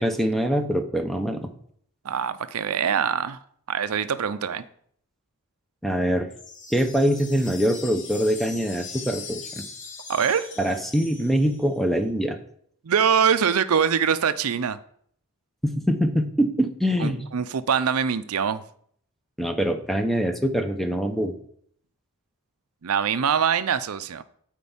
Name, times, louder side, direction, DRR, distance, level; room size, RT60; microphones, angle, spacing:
voice 1, 0.0-1.5 5.8-6.3 6.7-9.6 10.6-12.4 15.6-17.2 19.4-21.3, equal, ahead, 0.7 m, -24 dB
voice 2, 2.0-3.4 3.7-4.6 10.1-10.5 12.8-14.8 17.0-18.6 22.8-24.2, right 7 dB, 75° right, 0.5 m, -23 dB
sound 1, 6.3-11.8, left 4 dB, 35° left, 1.5 m, -40 dB
9.4 x 4.5 x 7.1 m
head